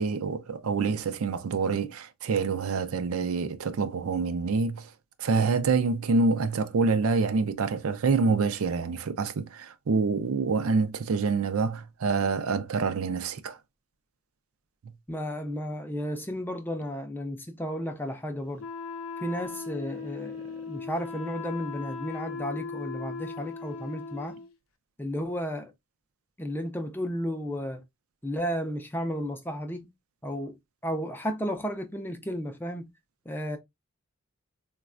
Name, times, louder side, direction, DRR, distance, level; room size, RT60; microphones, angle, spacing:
voice 1, 0.0-4.9 5.2-13.6, right 4 dB, 75° right, 0.4 m, -26 dB
voice 2, 15.1-18.6 19.2-24.4 25.0-25.7 26.4-27.8 28.2-29.9 30.2-32.9 33.3-33.6, equal, 10° left, 0.4 m, -33 dB
Wind instrument woodwind instrument, 18.6-24.5, left 4 dB, 75° left, 0.5 m, -38 dB
3.9 x 2.2 x 2.4 m
head